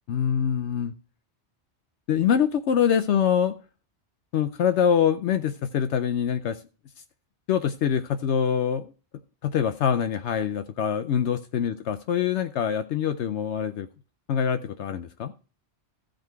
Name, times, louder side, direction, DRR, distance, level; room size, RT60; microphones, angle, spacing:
voice 1, 0.1-0.9 2.1-3.6 4.3-6.6 7.5-8.9 9.4-13.9 14.3-15.3, left 8 dB, 75° left, 10 dB, 0.9 m, -24 dB
14.5 x 5.2 x 4.5 m, 0.36 s
omnidirectional pair, 1.2 m